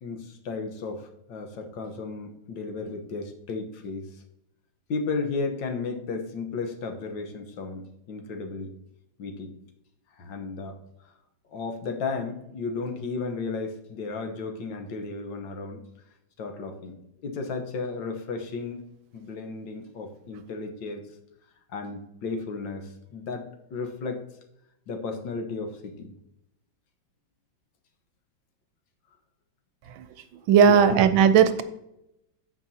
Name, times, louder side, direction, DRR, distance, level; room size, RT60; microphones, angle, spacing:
voice 1, 0.0-4.2 4.9-8.7 9.2-9.6 10.1-10.8 11.5-15.8 16.4-17.0 17.2-18.8 19.1-21.2 21.7-24.2 24.9-26.1 30.6-31.0, left 4 dB, 70° left, 4 dB, 1.7 m, -34 dB
voice 2, 30.5-31.6, right 7 dB, 80° right, 11 dB, 1.4 m, -17 dB
14.5 x 5.3 x 2.8 m, 0.84 s
omnidirectional pair, 2.2 m